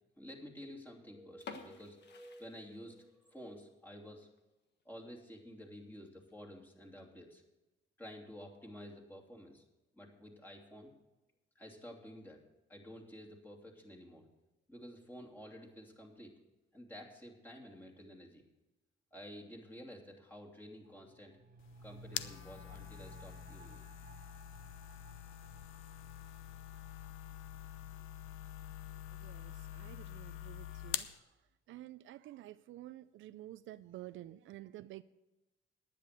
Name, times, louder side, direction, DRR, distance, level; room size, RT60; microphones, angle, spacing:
voice 1, 0.2-4.3 4.8-7.4 8.0-9.6 9.9-10.9 11.5-12.4 12.7-14.3 14.7-16.3 16.7-18.4 19.1-21.4 21.8-23.8 31.7-31.8, equal, 10° left, -1 dB, 2.9 m, -51 dB
sound 1, 1.4-3.2 3.6-3.7 4.2-4.4 4.8-4.9 5.2-5.3 6.0-6.3, left 5 dB, 60° left, 1.6 m, -51 dB
sound 2, 20.8-30.3 30.6-30.7, right 2 dB, 45° right, 1.2 m, -59 dB
sound 3, 21.6-31.2, left 12 dB, 90° left, 0.6 m, -46 dB
voice 2, 29.1-31.4 31.7-35.0, right 14 dB, 75° right, 15 dB, 0.4 m, -51 dB
10.5 x 9.5 x 6.7 m, 1.0 s
cardioid pair, 90°, 20 cm